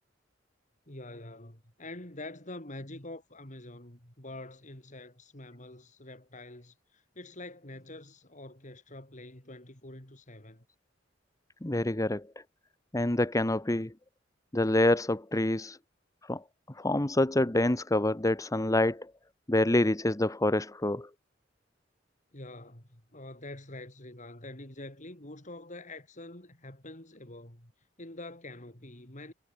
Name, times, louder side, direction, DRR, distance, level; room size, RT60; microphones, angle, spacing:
voice 1, 0.9-10.6 22.3-27.7 28.0-29.3, left 2 dB, 40° left, 5.5 m, -46 dB
voice 2, 11.6-12.2 12.9-13.9 14.5-15.8 16.3-16.4 16.8-19.1 19.5-21.1, left 1 dB, 20° left, 1.0 m, -26 dB
head